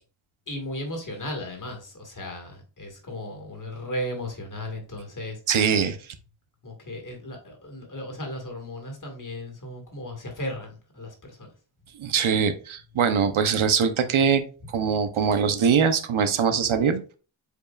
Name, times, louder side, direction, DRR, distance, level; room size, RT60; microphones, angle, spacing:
voice 1, 0.5-5.4 6.6-11.5, left 1 dB, 40° left, 2 dB, 2.0 m, -35 dB
voice 2, 5.5-6.0 12.0-17.0, right 6 dB, 85° right, 9 dB, 0.9 m, -22 dB
8.3 x 4.8 x 2.4 m, 0.36 s
wide cardioid pair, 150°, 47 cm